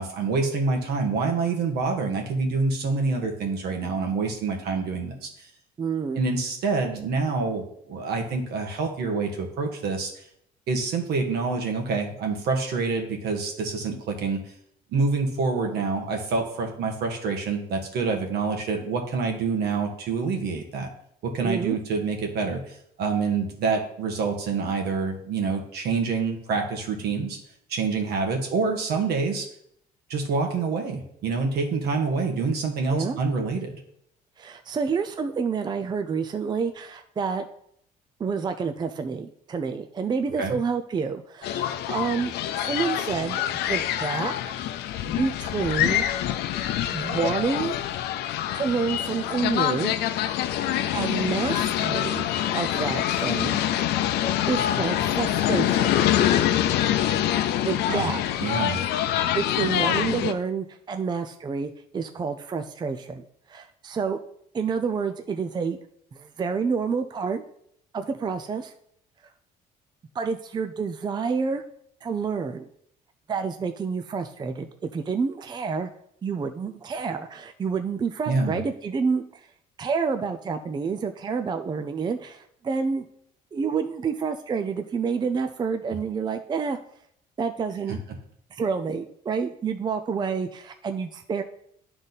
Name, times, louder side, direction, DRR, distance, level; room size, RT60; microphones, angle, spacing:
voice 1, 0.0-5.5 6.1-10.1 10.7-14.4 14.9-20.9 21.2-27.4 27.7-29.5 30.1-33.8 40.4-40.5 57.9-58.1 58.4-58.9 78.3-78.6, right 4 dB, 70° right, 2 dB, 1.6 m, -27 dB
voice 2, 5.8-6.2 21.4-21.8 32.9-33.2 34.4-37.5 38.2-44.5 45.1-46.0 46.9-47.8 48.5-49.9 50.9-52.3 52.5-53.6 54.5-55.9 57.6-58.2 59.3-64.2 64.5-65.8 66.1-67.4 67.9-68.7 70.1-71.6 72.0-72.7 73.3-75.9 76.2-79.5 79.8-83.1 83.5-86.8 87.4-88.0 88.5-91.4, right 5 dB, 25° right, 7 dB, 0.5 m, -28 dB
sound 1, 41.4-60.3, left 11 dB, 75° left, 0.6 m, -25 dB
10.5 x 3.9 x 4.1 m, 0.70 s
cardioid pair, 110°, 17 cm